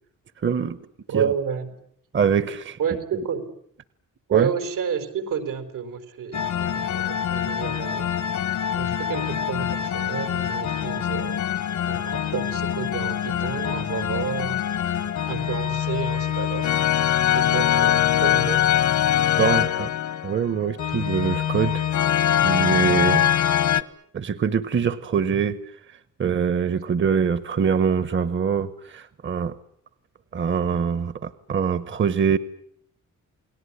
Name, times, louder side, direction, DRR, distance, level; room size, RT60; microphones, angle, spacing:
voice 1, 0.4-0.8 1.1-1.3 2.1-2.8 4.3-4.5 19.4-19.9 20.2-21.8 22.4-23.3 23.7-23.8 24.1-25.6 26.2-29.5 30.3-32.4, right 7 dB, 40° right, 15 dB, 1.0 m, -23 dB
voice 2, 1.1-1.7 2.8-3.5 4.3-8.1 8.8-11.4 11.9-14.6 15.3-16.7 17.3-18.6, right 7 dB, 90° right, 8 dB, 4.6 m, -30 dB
sound 1, 6.3-23.8, left 10 dB, 65° left, 1.2 m, -23 dB
29.5 x 19.5 x 9.9 m, 0.70 s
wide cardioid pair, 160°, 31 cm